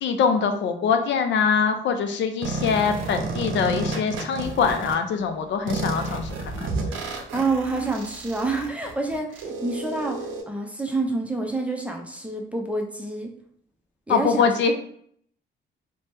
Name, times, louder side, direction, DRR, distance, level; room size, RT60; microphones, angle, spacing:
voice 1, 0.0-6.7 14.1-14.7, left 6 dB, 65° left, 6 dB, 0.4 m, -23 dB
sound 1, 2.4-4.9 5.7-10.4, right 3 dB, 80° right, 0.6 m, -31 dB
voice 2, 7.3-13.3 14.1-14.7, right 3 dB, 5° right, 1 dB, 0.5 m, -28 dB
2.8 x 2.1 x 3.3 m, 0.64 s
cardioid pair, 90°, 20 cm